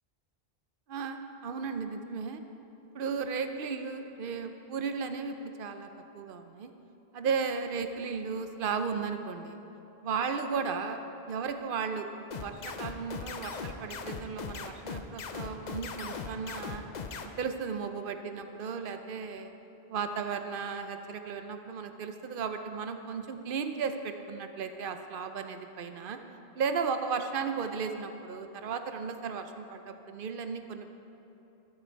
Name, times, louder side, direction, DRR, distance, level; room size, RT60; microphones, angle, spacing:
voice 1, 0.9-2.4 2.9-5.9 6.1-6.7 7.1-9.6 10.0-11.0 11.3-16.8 17.4-19.5 19.9-26.2 26.5-30.9, right 5 dB, 60° right, 7 dB, 0.8 m, -35 dB
sound 1, 12.3-17.3, left 6 dB, 50° left, 0.6 m, -38 dB
12.0 x 7.5 x 4.5 m, 2.9 s
omnidirectional pair, 1.0 m